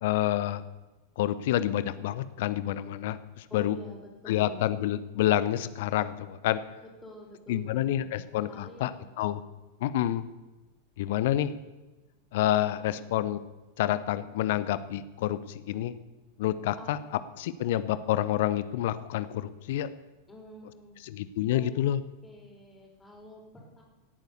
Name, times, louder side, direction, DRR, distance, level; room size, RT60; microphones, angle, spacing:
voice 1, 0.0-0.6 1.2-3.8 4.3-6.6 7.5-8.9 9.2-9.4 9.8-10.2 11.0-11.5 12.3-13.4 13.8-15.4 15.7-15.9 16.4-17.0 17.4-19.9 21.1-22.0, left 13 dB, 55° left, 15 dB, 0.8 m, -28 dB
voice 2, 3.5-4.7 7.0-8.2 8.5-9.1 9.7-10.0 12.9-13.3 16.8-16.9 20.3-21.0 21.5-21.7 22.2-23.8, left 1 dB, 10° left, -1 dB, 4.5 m, -48 dB
17.5 x 9.2 x 6.9 m, 1.1 s
figure-of-eight pair, 90°, 0 cm